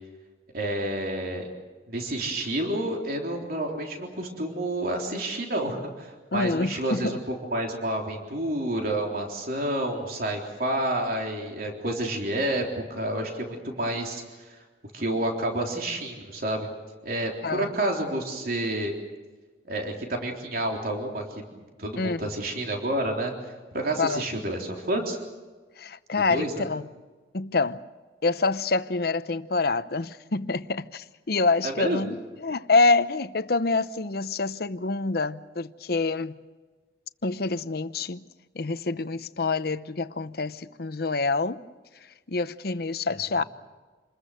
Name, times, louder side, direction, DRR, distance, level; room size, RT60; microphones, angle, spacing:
voice 1, 0.5-1.5 1.9-7.2 7.5-12.6 12.9-14.2 14.5-14.6 14.9-16.7 17.0-18.9 19.7-21.2 21.8-23.3 23.7-25.2 26.3-26.7 31.6-32.0, right 1 dB, 55° right, 3.7 m, -29 dB
voice 2, 6.3-7.1 17.4-17.7 22.0-22.2 24.0-24.2 25.8-26.8 27.3-27.8 28.2-36.4 37.2-38.2 38.5-41.6 42.3-43.4, left 3 dB, 60° left, 0.8 m, -26 dB
28.0 x 21.0 x 6.6 m
head